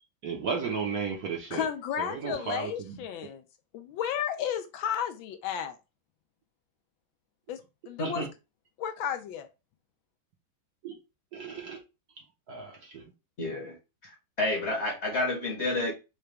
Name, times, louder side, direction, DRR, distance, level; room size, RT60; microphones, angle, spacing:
voice 1, 0.2-1.6 2.0-3.0 8.0-8.1 10.8-11.0 11.3-11.8 12.5-12.7, right 5 dB, 60° right, 1.1 m, -34 dB
voice 2, 1.5-3.4 3.7-5.8 7.5-7.6 7.9-8.2 8.8-9.5, left 8 dB, 75° left, 1.3 m, -33 dB
voice 3, 13.4-13.8 14.0-14.1 14.4-15.9, left 2 dB, 40° left, 1.1 m, -29 dB
4.9 x 2.2 x 3.2 m
omnidirectional pair, 2.2 m